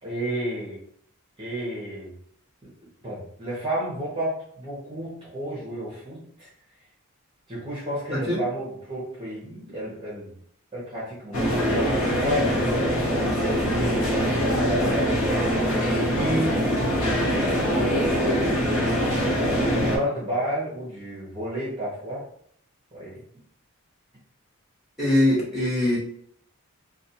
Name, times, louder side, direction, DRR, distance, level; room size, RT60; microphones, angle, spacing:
voice 1, 0.0-0.8 1.4-2.1 2.6-2.7 3.0-6.5 7.5-10.3 10.7-14.1 14.5-19.1 19.7-22.3 22.9-23.2, equal, 25° right, -7 dB, 0.7 m, -32 dB
voice 2, 8.1-8.4 25.0-26.0, left 1 dB, ahead, -7 dB, 0.9 m, -22 dB
sound 1, 11.3-20.0, equal, 70° left, 0.8 m, -23 dB
2.4 x 2.2 x 2.7 m, 0.65 s
head